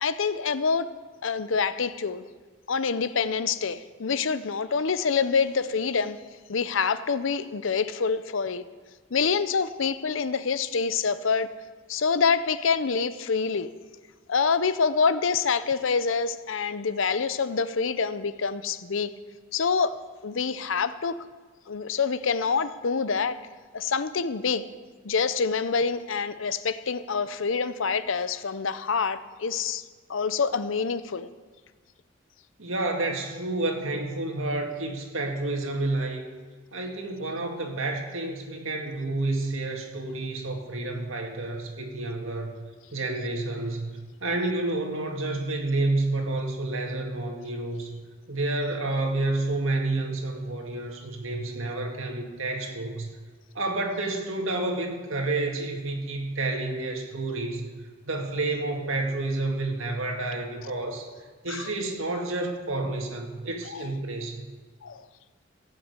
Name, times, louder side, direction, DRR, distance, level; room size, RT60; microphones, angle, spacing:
voice 1, 0.0-0.9 1.2-2.2 2.7-6.2 6.5-8.6 9.1-11.5 11.9-13.7 14.3-19.1 19.5-20.0 20.2-21.2 21.7-23.4 23.7-24.6 25.0-29.8 30.1-31.3 61.5-61.7 63.7-63.8 64.8-65.0, left 5 dB, 75° left, 14 dB, 0.6 m, -26 dB
voice 2, 32.6-36.3 36.7-42.6 42.9-48.0 48.3-53.1 53.5-57.7 58.1-61.1 61.4-64.4, right 2 dB, 85° right, 2 dB, 2.1 m, -29 dB
16.5 x 6.6 x 8.1 m, 1.4 s
head